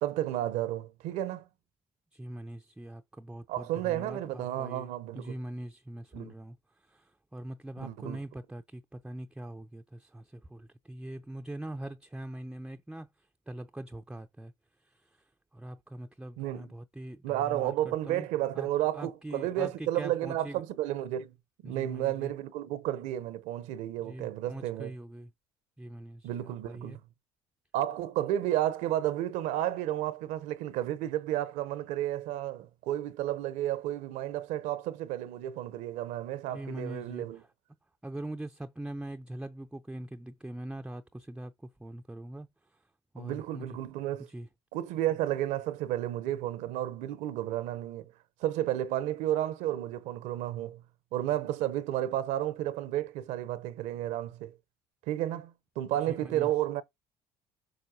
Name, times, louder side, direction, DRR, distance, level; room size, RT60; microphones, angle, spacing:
voice 1, 0.0-1.5 3.5-5.4 6.1-6.3 7.8-8.2 16.4-16.7 17.2-21.3 21.6-24.9 26.2-27.0 27.7-37.4 43.2-44.3 44.7-48.0 48.4-50.8 51.1-54.5 55.1-56.8, right 13 dB, 75° right, 0.7 m, -32 dB
voice 2, 2.1-4.9 5.1-13.1 13.5-14.5 14.8-18.3 18.5-20.6 21.6-22.3 24.0-25.3 25.8-27.0 36.5-37.5 38.0-42.8 43.1-43.8 44.2-44.5 56.1-56.5, right 1 dB, 5° right, 0.5 m, -42 dB
7.9 x 5.6 x 2.7 m
supercardioid pair, 75°, 13 cm